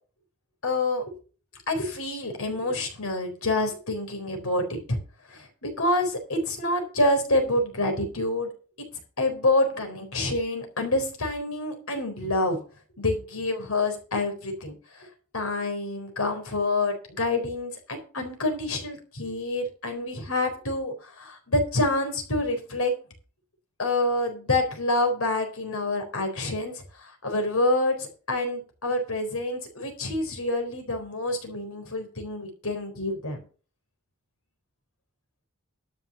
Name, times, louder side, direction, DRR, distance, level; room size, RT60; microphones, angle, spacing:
voice 1, 0.6-1.2 1.7-5.0 5.3-8.5 8.8-8.9 9.2-12.6 13.0-15.1 15.3-22.9 23.8-33.4, left 2 dB, 85° left, 5 dB, 4.2 m, -27 dB
12.5 x 5.7 x 7.1 m, 0.38 s
head